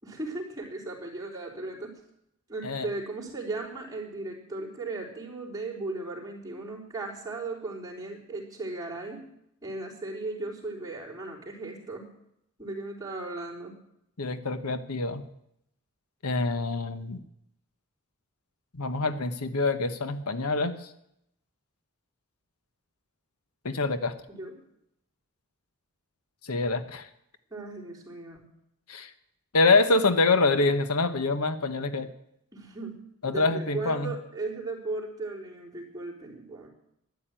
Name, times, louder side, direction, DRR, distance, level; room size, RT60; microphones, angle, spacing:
voice 1, 0.0-2.0 2.5-9.3 9.6-12.1 12.6-13.8 24.3-24.6 27.5-28.5 32.5-36.7, right 2 dB, 15° right, -4 dB, 4.0 m, -37 dB
voice 2, 14.2-15.3 16.2-17.2 18.7-20.9 23.6-24.1 26.4-27.1 28.9-29.1 29.5-32.1 33.2-34.2, left 3 dB, 85° left, 11 dB, 1.1 m, -25 dB
13.0 x 11.0 x 9.0 m, 0.77 s
head